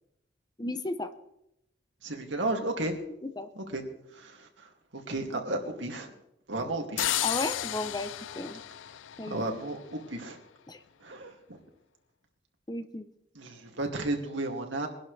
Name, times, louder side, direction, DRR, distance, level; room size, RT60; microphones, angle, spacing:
voice 1, 0.6-1.1 3.2-3.5 7.2-8.6 9.2-9.4 10.7-10.8 12.7-13.0, left 2 dB, 20° left, 10 dB, 0.7 m, -34 dB
voice 2, 2.0-3.0 3.6-6.1 6.5-7.1 9.3-10.4 11.0-11.6 13.3-14.9, right 2 dB, 80° right, 2 dB, 2.4 m, -34 dB
sound 1, 7.0-9.8, left 12 dB, 90° left, 0.4 m, -33 dB
22.5 x 11.5 x 3.3 m, 0.83 s
head